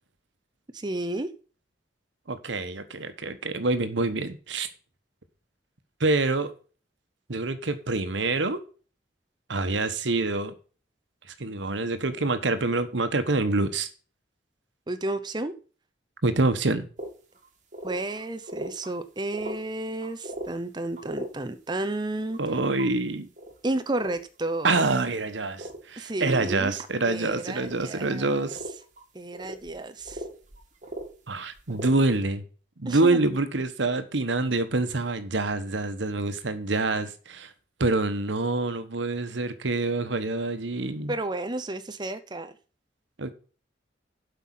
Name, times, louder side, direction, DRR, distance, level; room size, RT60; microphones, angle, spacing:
voice 1, 0.7-1.3 14.9-15.5 17.8-22.4 23.6-24.7 26.0-26.7 27.1-28.5 29.1-30.2 32.8-33.2 41.1-42.6, right 2 dB, 25° right, 0.7 m, -32 dB
voice 2, 2.3-4.7 6.0-6.5 7.3-8.6 9.5-10.5 11.4-13.9 16.2-16.9 22.4-23.3 24.6-28.6 31.3-32.4 32.8-37.5 37.8-41.1 43.2-43.3, right 2 dB, 80° right, 1.2 m, -26 dB
sound 1, 17.0-17.1 17.4-17.5 17.7-18.9 19.2-19.6 20.0-20.5 21.0-21.3 22.3-22.9 23.4-23.6 24.0-24.2 24.7-25.1 25.5-25.8 26.3-26.9 27.5-27.8 28.1-28.2 28.5-29.0 29.3-31.1 31.6-32.2, right 1 dB, 40° right, 1.9 m, -38 dB
7.9 x 5.7 x 7.5 m
head